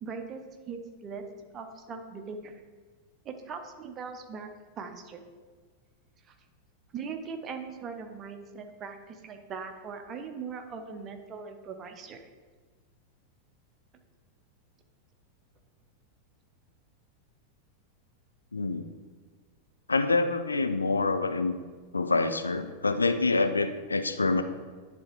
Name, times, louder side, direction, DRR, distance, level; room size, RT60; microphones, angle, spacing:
voice 1, 0.0-1.3 1.5-2.5 3.2-4.5 4.8-5.3 6.9-12.2, right 5 dB, 30° right, 6 dB, 0.8 m, -40 dB
voice 2, 18.5-18.9 19.9-21.5 21.9-24.4, left 3 dB, 80° left, 9 dB, 0.4 m, -26 dB
10.5 x 3.5 x 4.5 m, 1.5 s
figure-of-eight pair, 90°, 0 cm